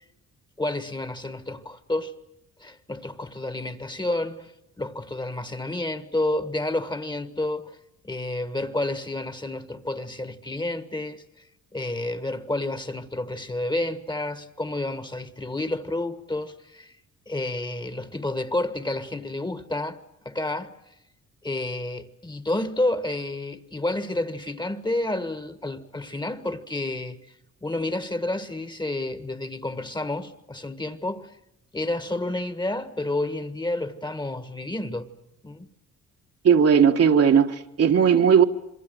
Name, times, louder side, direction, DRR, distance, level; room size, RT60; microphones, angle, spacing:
voice 1, 0.6-2.1 2.6-4.5 4.8-7.8 8.0-11.2 11.7-16.9 17.3-20.0 20.2-20.7 21.4-27.2 27.6-31.3 31.7-35.1 35.4-35.7, left 2 dB, 15° left, 1.6 m, -30 dB
voice 2, 36.4-38.4, right 7 dB, 55° right, 1.7 m, -17 dB
27.5 x 22.5 x 7.9 m
cardioid pair, 90°, 30 cm